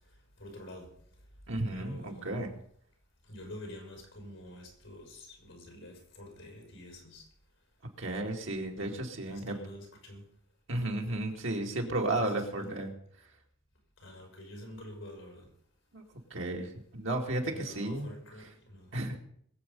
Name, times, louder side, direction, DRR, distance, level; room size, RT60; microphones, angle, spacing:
voice 1, 0.4-0.9 1.7-2.4 3.2-7.3 8.7-10.2 12.2-12.8 14.0-15.5 17.5-18.9, left 1 dB, 65° left, 5.3 m, -47 dB
voice 2, 1.5-2.5 8.0-9.6 10.7-12.9 15.9-16.0 16.3-18.1 18.9-19.2, right 2 dB, 65° right, 2.4 m, -33 dB
22.0 x 8.1 x 5.5 m
head